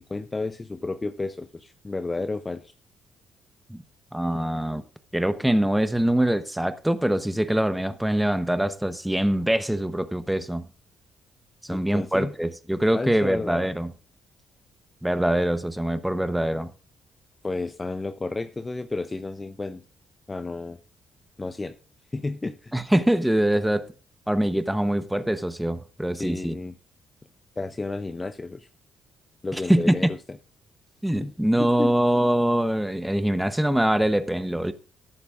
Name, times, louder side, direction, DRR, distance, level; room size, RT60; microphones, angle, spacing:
voice 1, 0.0-2.7 11.7-12.3 12.9-13.6 17.4-19.8 20.3-20.8 21.4-21.7 22.1-22.7 26.2-26.8 27.6-28.7 29.4-30.2 31.2-31.3 31.6-31.9, left 3 dB, 20° left, 0.7 m, -31 dB
voice 2, 4.1-4.8 5.1-10.7 11.6-13.9 15.0-16.7 22.7-23.9 24.3-26.6 29.5-30.1 31.0-34.7, right 1 dB, 5° right, 0.9 m, -23 dB
13.5 x 10.5 x 2.5 m
cardioid pair, 90°, 0 cm